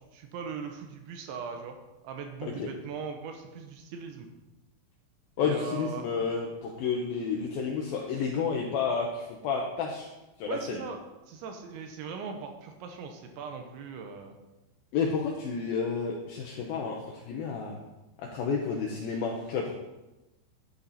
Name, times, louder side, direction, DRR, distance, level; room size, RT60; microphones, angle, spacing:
voice 1, 0.1-1.8 2.0-4.3 5.4-6.1 8.1-8.3 10.5-11.0 11.3-14.4, right 6 dB, 75° right, 4 dB, 3.2 m, -39 dB
voice 2, 5.4-10.1 10.4-10.8 14.9-17.8 18.3-19.7, left 5 dB, 75° left, -1 dB, 2.2 m, -30 dB
11.5 x 10.0 x 4.2 m, 1.0 s
omnidirectional pair, 5.7 m